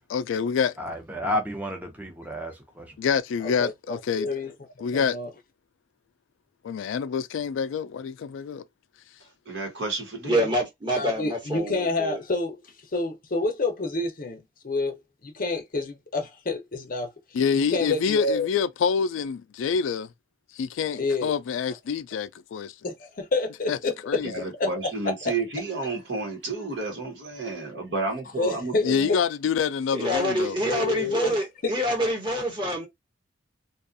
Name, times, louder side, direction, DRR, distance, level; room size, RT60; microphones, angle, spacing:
voice 1, 0.1-0.7 3.0-4.3 4.8-5.2 6.6-8.6 17.3-20.1 20.5-22.7 23.7-23.8 24.1-24.3 28.8-30.6, left 6 dB, 90° left, 0.3 m, -26 dB
voice 2, 0.8-3.0, left 1 dB, 10° right, 0.6 m, -31 dB
voice 3, 3.4-4.5 4.9-5.3 10.9-12.6 12.9-17.1 17.7-18.5 21.0-21.3 22.8-24.2 24.6-25.3 28.4-29.2 30.6-31.7, left 3 dB, 45° left, 0.6 m, -28 dB
voice 4, 9.5-10.5 24.2-29.1, right 3 dB, 65° right, 1.1 m, -31 dB
voice 5, 10.2-12.2 29.9-32.9, equal, 25° right, 1.1 m, -26 dB
2.5 x 2.3 x 2.5 m
head